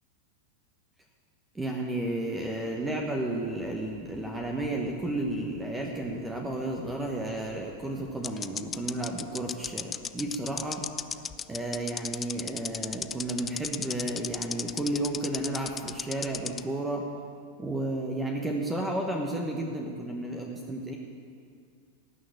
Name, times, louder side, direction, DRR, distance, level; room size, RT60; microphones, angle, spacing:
voice 1, 1.5-10.9 11.5-17.1 17.6-20.9, right 1 dB, 10° right, 1 dB, 1.3 m, -32 dB
sound 1, 3.7-5.3 5.6-5.7 7.5-7.6 8.2-16.6, left 7 dB, 20° left, 0.4 m, -34 dB
18.0 x 6.5 x 8.9 m, 2.3 s
figure-of-eight pair, 90°, 0 cm